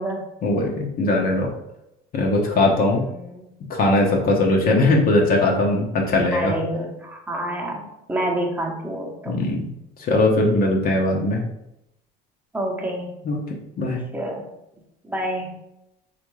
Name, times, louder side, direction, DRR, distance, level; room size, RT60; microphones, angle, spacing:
voice 1, 0.4-1.5 2.1-3.0 3.7-6.5 9.3-9.7 10.0-11.4 13.2-14.0, left 2 dB, 45° left, 0 dB, 0.8 m, -20 dB
voice 2, 2.8-3.4 6.3-9.4 12.5-13.1 14.1-14.4 15.0-15.6, right 1 dB, 10° right, 0 dB, 0.9 m, -28 dB
3.4 x 2.5 x 3.1 m, 0.84 s
supercardioid pair, 80°, 21 cm